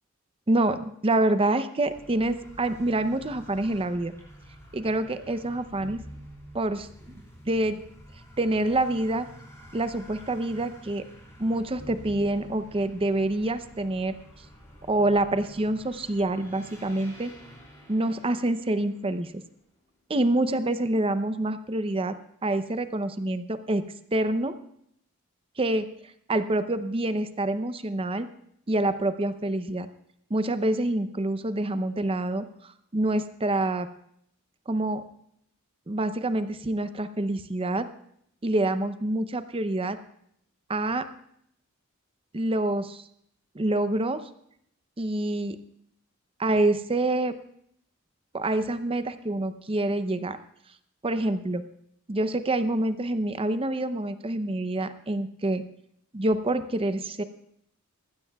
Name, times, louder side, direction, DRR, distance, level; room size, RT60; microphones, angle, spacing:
voice 1, 0.5-4.1 4.7-6.0 6.5-7.8 8.4-9.3 9.7-11.0 11.4-14.1 14.9-17.3 17.9-19.3 20.1-22.1 22.4-23.8 24.1-24.5 25.6-25.8 26.3-28.3 28.7-29.9 30.3-32.4 32.9-33.9 34.7-35.0 35.9-37.9 38.4-40.0 40.7-41.1 42.3-43.0 43.5-44.2 45.0-45.6 46.4-47.4 48.3-50.4 51.0-51.6 52.1-55.6 56.1-57.2, right 1 dB, 25° right, 11 dB, 0.6 m, -26 dB
sound 1, 1.9-19.8, equal, 15° left, 3.8 m, -48 dB
19.5 x 15.0 x 2.3 m, 0.71 s
head